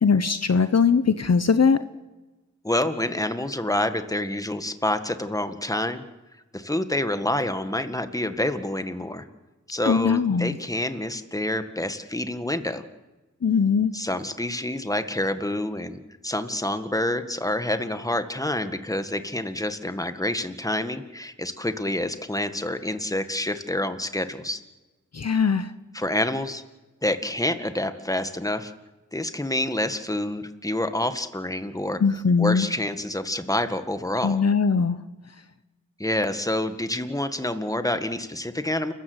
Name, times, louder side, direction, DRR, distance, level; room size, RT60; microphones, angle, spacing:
voice 1, 0.0-1.8 9.8-10.6 13.4-13.9 25.1-25.7 32.0-32.7 34.2-35.0, left 5 dB, 55° left, 11 dB, 1.0 m, -20 dB
voice 2, 2.6-6.0 6.5-9.3 9.7-12.8 13.9-24.6 25.9-26.6 27.0-28.7 29.1-32.0 32.4-34.4 36.0-38.9, left 1 dB, 10° left, 9 dB, 1.8 m, -27 dB
29.0 x 14.5 x 8.1 m, 1.1 s
cardioid pair, 50°, 30 cm